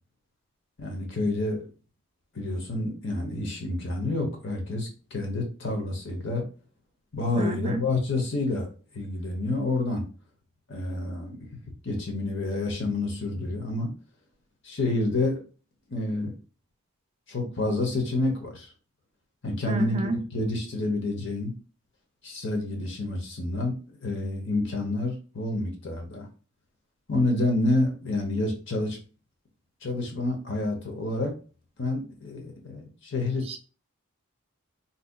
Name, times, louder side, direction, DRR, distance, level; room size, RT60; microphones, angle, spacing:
voice 1, 0.8-1.7 2.3-6.5 7.1-8.7 8.9-10.0 10.7-11.5 11.8-13.9 14.6-15.4 15.9-16.3 17.3-18.7 19.4-20.0 20.3-21.5 22.2-26.3 27.1-29.0 29.8-31.4 31.8-33.4, left 2 dB, 55° left, 0.9 m, -28 dB
voice 2, 7.3-7.8 19.7-20.2 33.5-33.6, right 2 dB, 25° right, 0.3 m, -29 dB
4.0 x 2.7 x 2.2 m
head